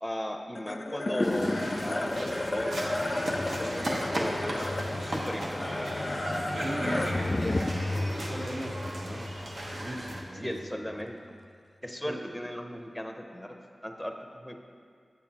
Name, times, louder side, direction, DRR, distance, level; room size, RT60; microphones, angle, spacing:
voice 1, 0.0-4.5 5.0-5.9 10.4-11.2 11.8-13.5 13.8-14.5, equal, 5° left, 4 dB, 0.7 m, -37 dB
sound 1, 0.5-11.0, left 2 dB, 50° left, 0.4 m, -32 dB
sound 2, 1.2-10.2, right 1 dB, 75° right, 0.9 m, -36 dB
voice 2, 6.6-9.2 9.7-10.5 12.0-12.2, right 1 dB, 45° right, -2 dB, 1.1 m, -38 dB
7.7 x 7.1 x 2.9 m, 2.2 s
cardioid pair, 45°, 0 cm